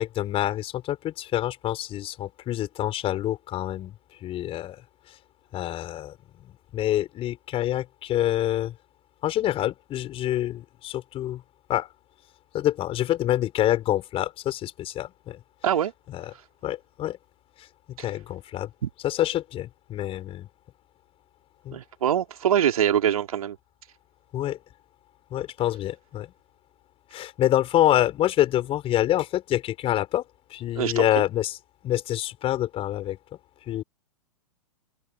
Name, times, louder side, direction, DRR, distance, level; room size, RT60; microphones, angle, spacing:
voice 1, 0.0-3.9 4.2-4.8 5.5-8.7 9.2-11.4 11.7-11.9 12.5-15.4 16.1-16.3 16.6-17.2 17.9-18.7 19.0-20.5 21.6-21.8 24.3-24.6 25.3-26.3 27.1-30.2 30.5-31.6 31.8-33.2 33.7-33.8, left 13 dB, 30° left, 5.6 m, -26 dB
voice 2, 21.7-23.6 30.8-31.1, right 10 dB, 65° right, 3.7 m, -23 dB
figure-of-eight pair, 110°, 19 cm